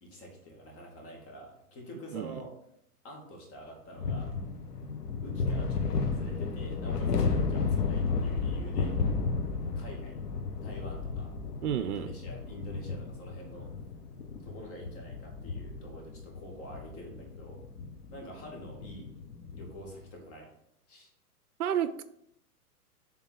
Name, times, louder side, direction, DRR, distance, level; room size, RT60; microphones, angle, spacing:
voice 1, 0.0-2.5 3.0-4.3 5.2-9.0 9.8-10.2 10.6-11.3 11.8-13.7 14.4-17.6 18.1-19.1 19.5-20.5 20.9-21.1, equal, 30° left, 2.3 m, -47 dB
sound 1, 4.0-19.8, left 4 dB, 80° left, 1.1 m, -33 dB
voice 2, 11.6-12.1 21.6-22.0, right 9 dB, 70° right, 0.5 m, -31 dB
7.3 x 3.7 x 4.6 m
figure-of-eight pair, 110°, 47 cm